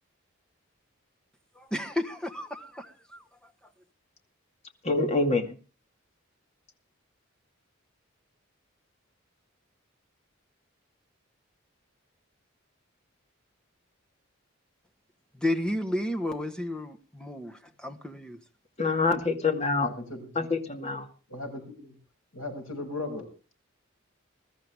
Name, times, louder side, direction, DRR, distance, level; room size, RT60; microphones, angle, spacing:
voice 1, 1.5-3.7 15.3-18.4, left 1 dB, 5° left, 1.4 m, -33 dB
voice 2, 4.8-5.5 18.8-19.9 20.4-21.0, left 3 dB, 30° left, 2.2 m, -26 dB
voice 3, 19.8-20.3 20.7-20.8 21.3-22.0 22.3-23.3, left 2 dB, 80° left, 6.8 m, -37 dB
21.5 x 13.5 x 3.6 m
head